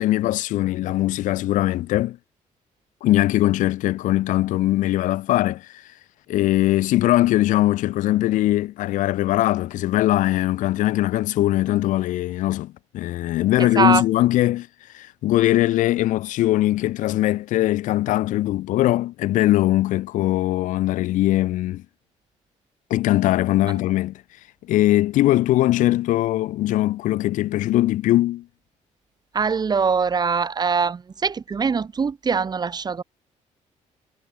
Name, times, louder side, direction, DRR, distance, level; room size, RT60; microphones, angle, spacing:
voice 1, 0.0-2.2 3.0-5.7 6.3-14.7 14.9-21.8 22.9-24.2 24.7-28.4, left 15 dB, 85° left, 1.2 m, -21 dB
voice 2, 13.6-14.0 23.6-23.8 29.3-33.0, right 5 dB, 30° right, 1.5 m, -22 dB
cardioid pair, 110°, 13 cm